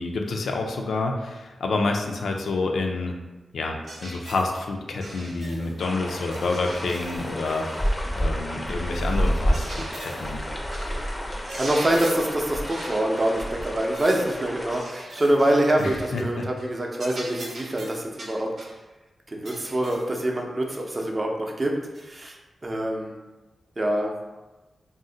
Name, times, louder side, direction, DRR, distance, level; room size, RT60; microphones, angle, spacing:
voice 1, 0.0-3.2 3.5-10.4 15.8-16.4, left 3 dB, 85° left, 2 dB, 0.3 m, -28 dB
sound 1, 3.9-4.5 5.0-5.8 6.2-8.1 8.8-10.3 10.7-11.0 11.3-12.3 12.7-13.0 13.6-14.3 14.7-16.3 16.6-16.7 17.0-18.8 19.4-20.1 20.7-20.8 21.9-22.1, right 1 dB, 75° right, 0.7 m, -40 dB
sound 2, 5.8-14.8, equal, 20° left, 0.4 m, -29 dB
voice 2, 11.5-18.5 19.3-22.4 22.6-23.1 23.8-24.1, right 1 dB, 35° right, 0 dB, 0.5 m, -25 dB
2.5 x 2.0 x 3.8 m, 1.1 s
cardioid pair, 70°, 0 cm